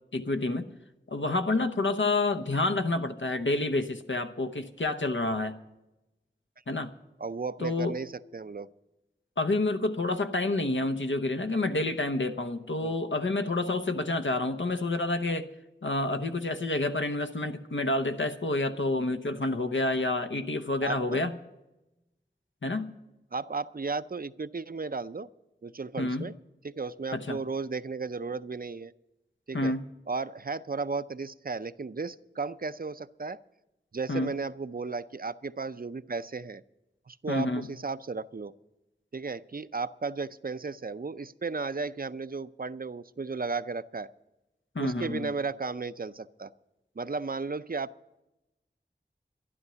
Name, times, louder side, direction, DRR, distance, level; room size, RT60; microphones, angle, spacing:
voice 1, 0.1-0.7 1.1-5.5 6.7-6.9 7.6-8.0 9.4-15.5 15.8-21.4 22.6-22.9 26.0-26.3 27.1-27.4 29.5-29.9 34.1-34.3 37.3-37.7 44.7-45.3, left 2 dB, 90° left, 8 dB, 0.9 m, -29 dB
voice 2, 7.2-8.7 12.8-13.0 20.8-21.4 23.3-25.3 25.6-26.3 26.6-28.9 29.5-29.7 30.1-33.4 33.9-36.6 37.1-38.5 39.1-44.1 44.8-46.5 47.0-47.9, right 4 dB, 50° right, 14 dB, 0.5 m, -34 dB
12.5 x 11.5 x 6.8 m, 0.95 s
wide cardioid pair, 45°, 19 cm